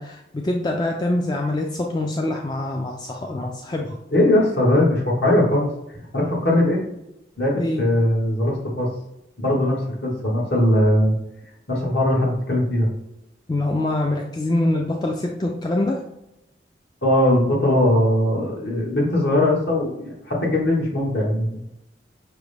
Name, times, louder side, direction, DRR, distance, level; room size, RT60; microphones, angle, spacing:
voice 1, 0.0-4.0 7.5-7.8 13.5-16.0, left 1 dB, 25° left, 1 dB, 0.3 m, -24 dB
voice 2, 4.1-5.7 6.1-6.8 7.4-8.9 9.4-11.1 11.7-12.9 17.0-21.6, left 1 dB, 65° left, -2 dB, 1.3 m, -20 dB
6.0 x 2.1 x 3.3 m, 0.87 s
head